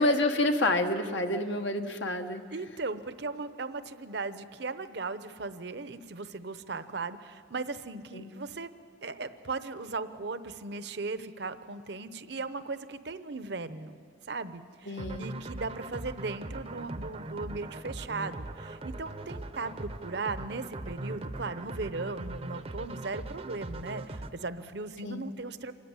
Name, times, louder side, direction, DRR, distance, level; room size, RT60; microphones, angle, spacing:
voice 1, 0.0-2.4 8.1-8.3 14.8-15.3 25.0-25.2, left 1 dB, 70° left, 5 dB, 1.2 m, -28 dB
voice 2, 2.5-8.7 9.0-14.0 14.3-25.7, right 3 dB, 60° right, 12 dB, 0.8 m, -37 dB
sound 1, 15.0-24.3, right 2 dB, 30° right, 0.7 m, -40 dB
26.0 x 13.5 x 9.6 m, 2.3 s
head